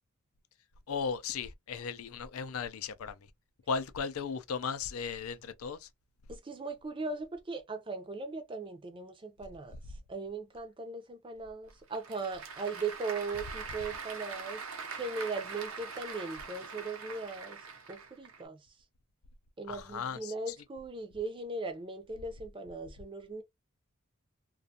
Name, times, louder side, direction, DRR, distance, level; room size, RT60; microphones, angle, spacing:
voice 1, 0.9-3.1 3.7-5.9 19.7-20.3, left 5 dB, 85° left, 0.4 m, -36 dB
voice 2, 6.3-9.7 10.1-14.6 14.9-18.6 19.6-23.4, right 3 dB, 25° right, 0.5 m, -39 dB
Applause / Crowd, 11.7-18.4, right 5 dB, 75° right, 0.6 m, -43 dB
2.4 x 2.3 x 2.7 m
head